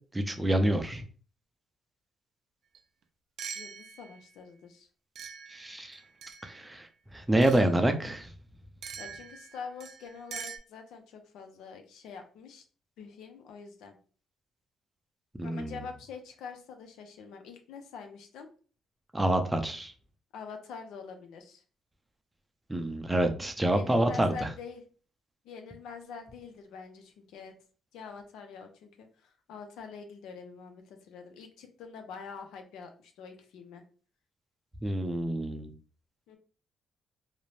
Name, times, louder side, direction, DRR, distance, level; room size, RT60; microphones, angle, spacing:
voice 1, 0.1-1.0 5.5-6.0 6.4-6.9 7.1-8.3 15.4-15.8 19.1-19.9 22.7-24.5 34.8-35.7, right 1 dB, 10° right, 6 dB, 0.5 m, -27 dB
sound 1, 2.7-2.8 3.4-4.2 5.2-6.7 7.4-7.7 8.8-10.6, right 7 dB, 70° right, 0.4 m, -43 dB
voice 2, 3.5-4.9 9.0-12.6 13.0-14.0 15.4-18.5 20.3-21.6 23.7-24.8 25.4-27.5 27.9-33.8 36.3-36.4, left 5 dB, 85° left, 5 dB, 0.5 m, -45 dB
2.5 x 2.0 x 3.1 m, 0.39 s
cardioid pair, 90°, 0 cm